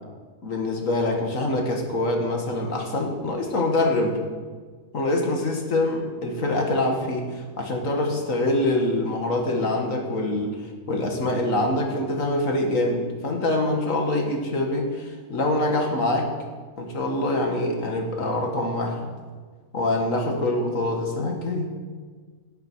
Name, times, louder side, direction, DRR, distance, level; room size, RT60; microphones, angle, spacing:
voice 1, 0.4-4.2 4.9-10.6 10.9-16.3 16.8-19.1 19.7-21.7, left 2 dB, 75° left, 1 dB, 2.3 m, -25 dB
17.5 x 8.8 x 4.7 m, 1.5 s
omnidirectional pair, 1.4 m